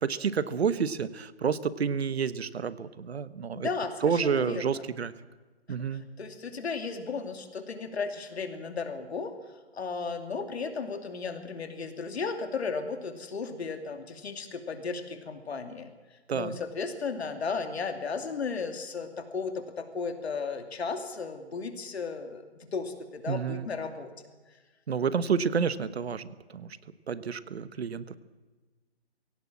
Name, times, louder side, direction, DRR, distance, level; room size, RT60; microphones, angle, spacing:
voice 1, 0.0-3.7 4.0-5.1 5.7-6.0 16.3-16.6 23.3-23.7 24.9-26.7 27.1-28.2, right 6 dB, 70° right, 15 dB, 1.3 m, -29 dB
voice 2, 3.5-4.8 5.7-9.4 9.7-15.9 16.3-24.1, left 4 dB, 75° left, 7 dB, 2.7 m, -35 dB
21.0 x 17.5 x 7.5 m, 1.3 s
hypercardioid pair, 165°, 32 cm